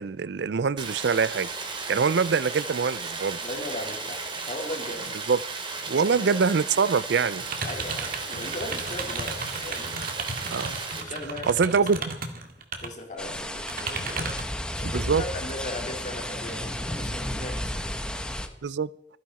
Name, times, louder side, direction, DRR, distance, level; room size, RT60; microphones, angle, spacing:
voice 1, 0.0-1.5 1.9-3.4 5.3-5.4 5.9-7.4 10.5-10.8 11.5-12.0 14.9-15.2 18.6-18.9, right 5 dB, 75° right, 0.5 m, -24 dB
Stream, 0.8-11.0, right 4 dB, 30° right, 2.6 m, -35 dB
voice 2, 3.4-5.1 6.0-6.4 7.6-10.0 11.0-12.1 12.8-14.4 14.7-18.3, left 1 dB, 45° left, 4.0 m, -38 dB
sound 1, 7.4-12.9 13.3-14.5, right 4 dB, 50° right, 2.1 m, -34 dB
sound 2, 13.2-18.5, left 1 dB, 5° left, 1.1 m, -32 dB
27.5 x 10.5 x 4.2 m
head